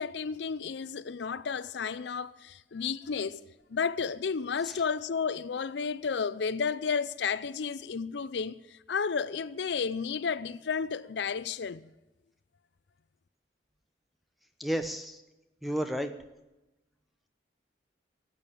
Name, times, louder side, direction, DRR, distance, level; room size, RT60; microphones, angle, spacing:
voice 1, 0.0-3.4 3.7-11.9, left 5 dB, 80° left, 0.5 m, -32 dB
voice 2, 14.6-15.2 15.6-16.1, equal, ahead, 0.9 m, -31 dB
14.5 x 8.6 x 8.6 m
head